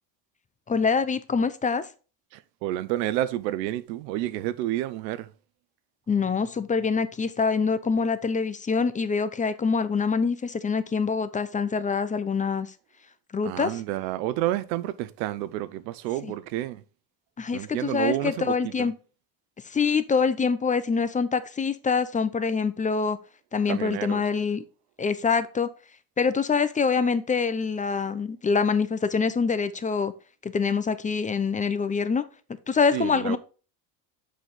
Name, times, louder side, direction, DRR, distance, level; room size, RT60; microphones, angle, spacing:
voice 1, 0.7-1.9 6.1-12.7 13.3-13.7 16.2-16.3 17.4-18.9 19.6-23.2 23.5-24.6 25.0-25.7 26.2-30.1 30.4-32.2 32.7-33.4, left 5 dB, 15° left, 0.6 m, -25 dB
voice 2, 2.3-5.3 13.4-16.8 17.5-18.9 23.7-24.3 32.9-33.4, right 14 dB, 85° right, 0.8 m, -30 dB
6.5 x 4.9 x 3.8 m
supercardioid pair, 90°, 49 cm